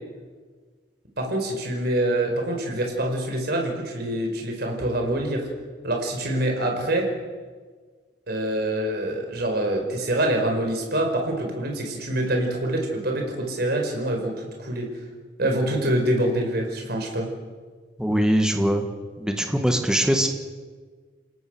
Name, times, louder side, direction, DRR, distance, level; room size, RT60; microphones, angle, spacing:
voice 1, 1.2-5.5 5.8-7.1 8.3-14.9 15.4-17.3, right 1 dB, 55° right, 2 dB, 5.0 m, -25 dB
voice 2, 18.0-18.9 19.2-20.3, equal, 5° right, 4 dB, 1.8 m, -22 dB
28.5 x 17.5 x 6.4 m, 1.5 s
head